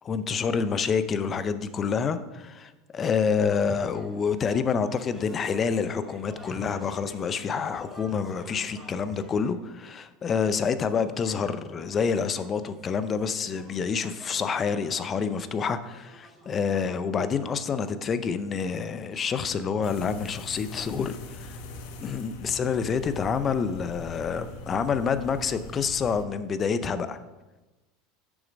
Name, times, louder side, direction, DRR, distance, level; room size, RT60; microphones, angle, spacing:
voice 1, 0.0-21.6 22.0-27.2, left 6 dB, 30° left, 12 dB, 0.6 m, -28 dB
sound 1, 3.9-9.6 10.8-17.9, equal, ahead, 2.3 m, -50 dB
sound 2, 19.8-26.2, left 1 dB, 70° left, 1.0 m, -41 dB
7.1 x 6.7 x 5.1 m, 1.1 s
supercardioid pair, 125°, 0 cm